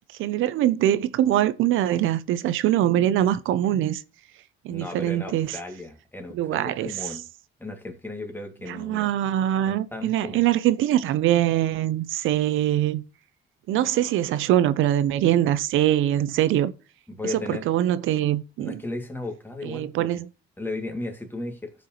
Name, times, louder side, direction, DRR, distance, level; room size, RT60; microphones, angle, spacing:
voice 1, 0.2-4.0 4.6-5.5 6.3-6.9 8.7-13.0 13.7-16.7 17.3-18.8 19.6-20.3, right 12 dB, 85° right, 0.7 m, -23 dB
voice 2, 4.7-7.2 7.6-9.1 9.6-10.4 17.1-17.7 18.6-20.2 20.6-21.7, left 2 dB, 10° left, 2.4 m, -35 dB
15.5 x 5.3 x 3.1 m
cardioid pair, 90°, 20 cm